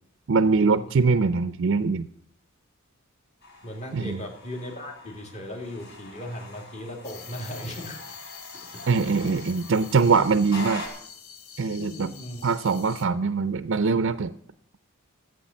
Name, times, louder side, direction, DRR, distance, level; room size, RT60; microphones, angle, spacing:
voice 1, 0.3-2.1 3.9-4.2 8.9-10.8 11.6-12.1 12.4-14.3, right 4 dB, 60° right, 13 dB, 0.5 m, -22 dB
sound 1, 3.4-10.9, left 1 dB, 55° left, 4.6 m, -43 dB
voice 2, 3.6-8.2 8.5-8.9 11.8-12.4, left 1 dB, 35° left, 2 dB, 2.7 m, -38 dB
sound 2, 7.0-13.1, left 7 dB, 85° left, 1.3 m, -45 dB
14.5 x 8.2 x 7.2 m, 0.66 s
head